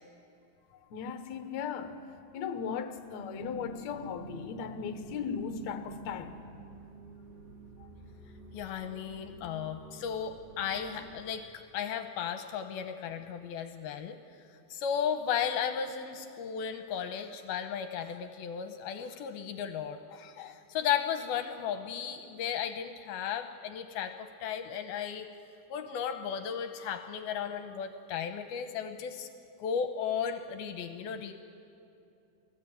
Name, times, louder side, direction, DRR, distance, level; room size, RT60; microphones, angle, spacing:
voice 1, 0.9-1.9 2.3-6.4 7.8-7.9, left 6 dB, 60° left, 2.0 m, -37 dB
sound 1, 3.4-11.2, right 1 dB, 40° right, 1.2 m, -51 dB
voice 2, 8.5-11.5 11.7-14.2 14.7-25.3 25.7-29.3 29.6-31.3, left 8 dB, 75° left, 2.6 m, -35 dB
29.0 x 18.5 x 9.2 m
omnidirectional pair, 4.7 m